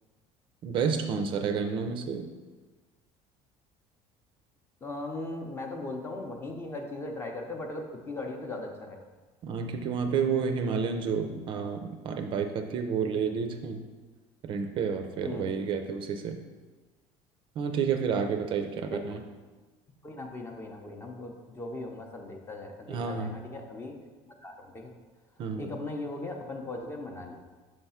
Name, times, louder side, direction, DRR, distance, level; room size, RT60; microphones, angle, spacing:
voice 1, 0.6-2.3 9.4-13.8 14.4-16.4 17.6-19.2 22.9-23.3 25.4-25.7, right 6 dB, 40° right, 6 dB, 0.5 m, -30 dB
voice 2, 4.8-9.0 15.2-15.5 18.9-19.2 20.0-24.0 24.3-24.9 25.6-27.4, left 2 dB, 20° left, 2 dB, 0.7 m, -38 dB
6.3 x 3.5 x 5.6 m, 1.3 s
cardioid pair, 160°, 13 cm